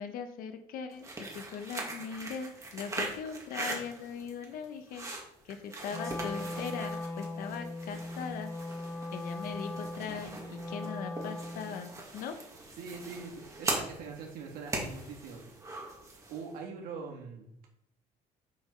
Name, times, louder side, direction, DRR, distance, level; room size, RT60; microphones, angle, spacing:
voice 1, 0.0-5.1 5.4-8.8 9.1-12.3, left 7 dB, 70° left, 7 dB, 1.1 m, -40 dB
sound 1, 0.9-16.5, right 2 dB, 20° right, 2.0 m, -41 dB
Wind instrument woodwind instrument, 5.9-11.9, left 1 dB, 15° left, 0.9 m, -39 dB
voice 2, 12.8-15.4 16.3-17.7, right 5 dB, 75° right, 1 dB, 1.7 m, -43 dB
7.1 x 5.3 x 5.3 m, 0.78 s
cardioid pair, 135°, 15 cm